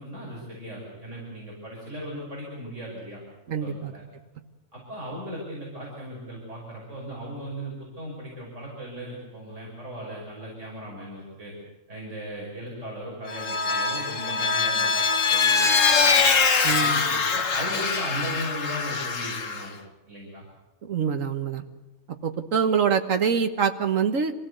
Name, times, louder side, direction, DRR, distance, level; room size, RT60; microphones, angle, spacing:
voice 1, 0.0-3.2 3.6-4.0 4.7-11.5 11.9-16.3 16.7-19.8 20.1-20.4, equal, 70° right, -4 dB, 5.9 m, -37 dB
voice 2, 3.5-3.9 16.6-17.0 20.8-21.6 22.2-24.3, right 6 dB, 85° right, 8 dB, 1.7 m, -25 dB
Vehicle, 13.3-19.7, left 5 dB, 75° left, 1.8 m, -23 dB
26.0 x 16.5 x 8.0 m, 1.1 s
omnidirectional pair, 1.3 m